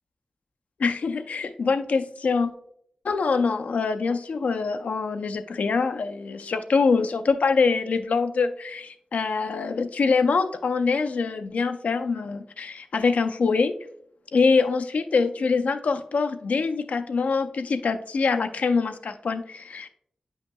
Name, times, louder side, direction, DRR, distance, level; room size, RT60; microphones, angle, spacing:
voice 1, 0.8-2.5 3.0-13.7 14.3-19.9, left 4 dB, 80° left, 9 dB, 0.5 m, -24 dB
8.9 x 5.6 x 2.2 m, 0.69 s
wide cardioid pair, 120°, 2 cm